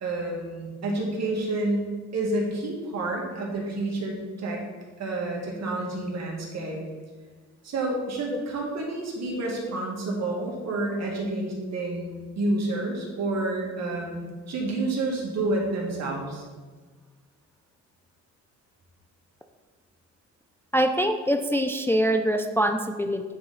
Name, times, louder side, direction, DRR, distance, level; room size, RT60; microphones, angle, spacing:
voice 1, 0.0-4.6 5.0-6.8 7.6-16.4, right 2 dB, 60° right, -1 dB, 1.9 m, -29 dB
voice 2, 20.7-23.2, equal, 10° left, 5 dB, 0.3 m, -24 dB
8.7 x 4.0 x 3.9 m, 1.4 s
cardioid pair, 90°, 30 cm